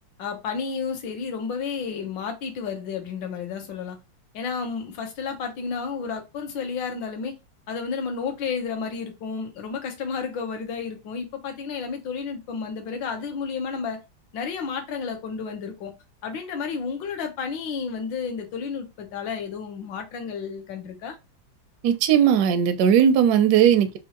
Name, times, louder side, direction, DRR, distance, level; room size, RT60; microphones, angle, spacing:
voice 1, 0.2-4.0 4.3-7.4 7.7-14.0 14.3-15.9 16.2-21.2, left 5 dB, 70° left, 1.5 m, -31 dB
voice 2, 21.8-24.0, right 9 dB, 75° right, 0.9 m, -18 dB
4.3 x 2.4 x 2.8 m
omnidirectional pair, 2.2 m